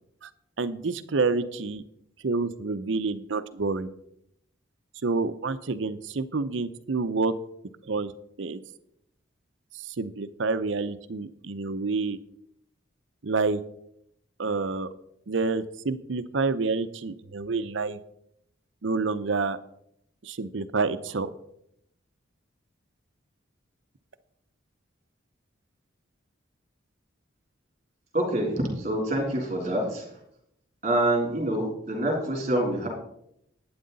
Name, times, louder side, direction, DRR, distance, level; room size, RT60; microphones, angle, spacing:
voice 1, 0.6-1.8 2.2-3.9 5.0-7.3 7.9-8.1 8.4-8.6 10.0-12.2 13.2-13.6 14.4-14.9 15.3-18.0 18.8-19.6 20.3-21.3, right 4 dB, 70° right, 12 dB, 0.6 m, -28 dB
voice 2, 28.1-30.0 30.8-32.9, right 1 dB, 35° right, 0 dB, 3.3 m, -26 dB
11.5 x 9.5 x 4.0 m, 0.75 s
head